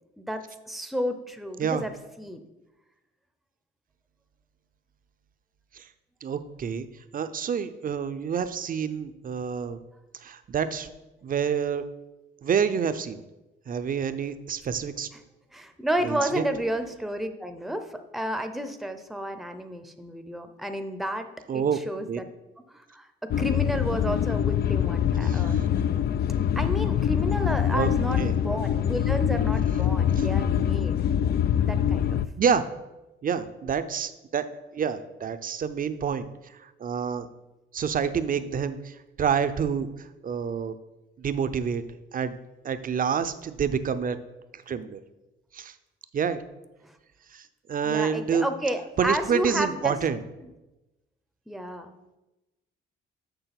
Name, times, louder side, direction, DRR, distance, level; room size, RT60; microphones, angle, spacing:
voice 1, 0.2-1.9 2.2-2.4 15.5-21.3 21.5-22.2 22.7-23.1 23.4-25.5 26.6-30.9 31.6-32.2 46.8-47.0 47.8-50.0 50.4-50.5 51.5-52.0, right 1 dB, ahead, 8 dB, 0.7 m, -31 dB
voice 2, 6.2-6.9 7.1-9.8 10.2-10.9 11.2-11.8 12.4-13.2 13.7-15.1 16.0-16.4 21.5-21.8 22.1-22.2 25.2-25.7 27.7-27.9 28.2-28.4 30.2-30.3 32.4-32.6 33.2-34.5 34.7-36.3 36.6-37.3 37.7-39.9 40.2-40.8 41.2-41.8 42.1-42.4 42.6-44.2 44.5-45.0 45.5-45.7 46.1-46.4 47.3-48.5 49.0-50.2, right 7 dB, 45° right, 11 dB, 0.7 m, -28 dB
sound 1, 23.3-32.3, left 9 dB, 55° left, 0.4 m, -24 dB
6.9 x 6.3 x 5.9 m, 1.0 s
cardioid pair, 90°, 20 cm